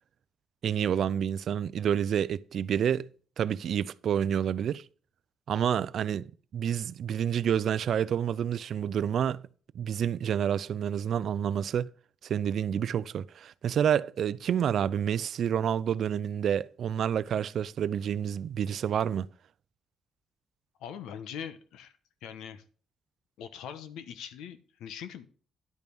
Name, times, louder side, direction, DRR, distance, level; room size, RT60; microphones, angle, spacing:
voice 1, 0.6-3.1 3.4-4.8 5.5-9.4 9.7-11.9 12.2-19.3, right 9 dB, 65° right, 0.4 m, -29 dB
voice 2, 20.8-22.6 23.4-25.3, left 8 dB, 85° left, 1.0 m, -42 dB
10.5 x 5.3 x 6.1 m
cardioid pair, 90°, 0 cm